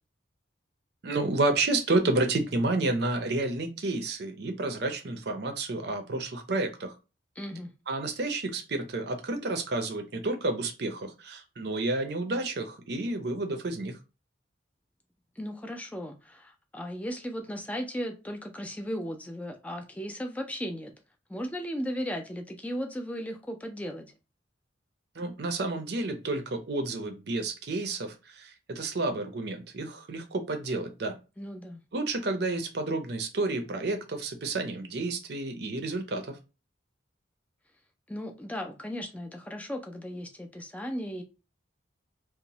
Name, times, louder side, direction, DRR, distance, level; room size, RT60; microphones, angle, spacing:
voice 1, 1.0-6.9 7.9-14.0 25.2-31.2 31.9-36.4, right 2 dB, 60° right, 0.6 m, -30 dB
voice 2, 7.4-7.7 15.4-20.9 21.3-24.1 31.4-31.8 38.1-41.2, equal, 5° left, 0.4 m, -36 dB
3.0 x 2.1 x 2.7 m
head